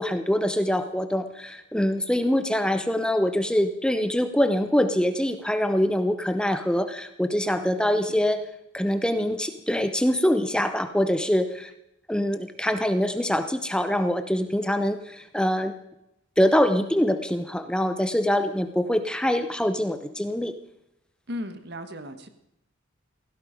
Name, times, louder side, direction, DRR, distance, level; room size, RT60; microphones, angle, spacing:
voice 1, 0.0-8.5 8.7-11.7 12.1-15.7 16.4-20.5, equal, 5° left, 9 dB, 0.7 m, -24 dB
voice 2, 7.4-8.2 21.3-22.3, equal, 55° right, 9 dB, 1.5 m, -37 dB
16.5 x 16.0 x 5.2 m, 0.84 s
head